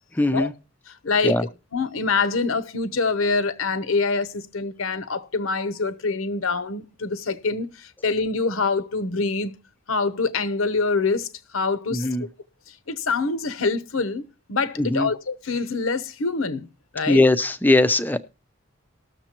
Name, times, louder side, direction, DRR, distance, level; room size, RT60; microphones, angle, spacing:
voice 1, 0.2-0.5 1.2-1.4 11.9-12.2 14.8-15.1 17.1-18.2, left 2 dB, 10° left, 0.5 m, -20 dB
voice 2, 1.0-1.4 1.7-9.6 9.9-12.1 12.7-16.7 16.9-17.3, left 4 dB, 80° left, 0.8 m, -25 dB
19.5 x 6.7 x 2.9 m
head